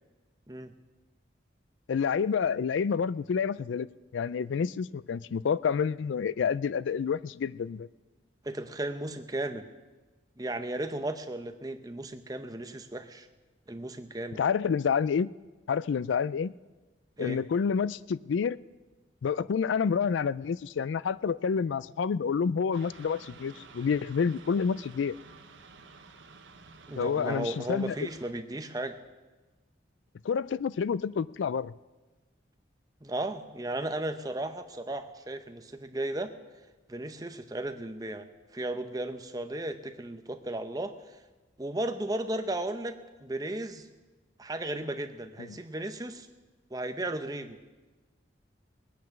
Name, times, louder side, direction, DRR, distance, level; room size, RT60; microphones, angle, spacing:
voice 1, 1.9-3.9 4.1-7.9 14.4-15.3 15.7-16.5 17.2-18.6 19.2-25.2 26.9-28.0 30.2-31.7 45.5-45.6, left 6 dB, 85° left, 19 dB, 0.4 m, -28 dB
voice 2, 8.4-9.7 10.4-13.3 13.7-14.4 17.2-17.4 26.9-29.0 33.0-36.3 36.9-38.3 38.5-41.2 41.6-43.9 44.4-46.3 46.7-47.6, right 1 dB, 20° right, 8 dB, 0.8 m, -35 dB
sound 1, 22.7-28.3, right 4 dB, 90° right, 1.1 m, -52 dB
20.5 x 9.4 x 5.9 m, 1.2 s
head